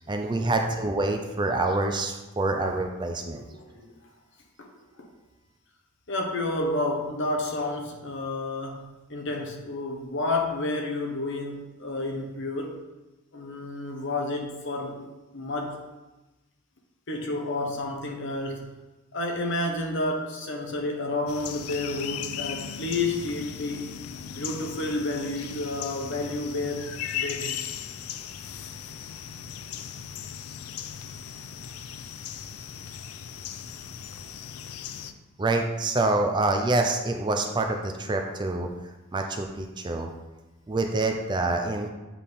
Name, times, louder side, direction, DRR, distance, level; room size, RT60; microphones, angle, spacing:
voice 1, 0.1-3.4 35.4-38.7 39.1-40.1 40.7-41.9, right 2 dB, 20° right, 4 dB, 0.4 m, -26 dB
voice 2, 3.3-3.9 4.6-5.1 6.1-12.8 13.3-15.1 15.3-15.8 17.1-18.7 19.1-23.9 24.3-27.6, left 2 dB, 60° left, 1 dB, 1.0 m, -30 dB
sound 1, 21.3-35.1, left 8 dB, 85° left, 0.4 m, -37 dB
7.5 x 4.1 x 3.5 m, 1.1 s
head